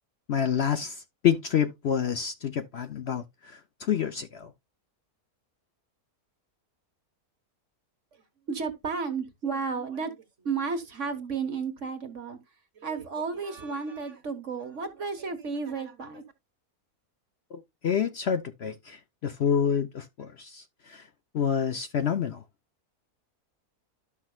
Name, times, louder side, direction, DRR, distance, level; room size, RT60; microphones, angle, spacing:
voice 1, 0.3-4.5 17.5-21.1 21.3-22.4, left 8 dB, 55° left, 0.8 m, -28 dB
voice 2, 8.5-12.4 12.8-16.2, right 5 dB, 55° right, 1.7 m, -33 dB
12.0 x 6.1 x 2.3 m
omnidirectional pair, 1.5 m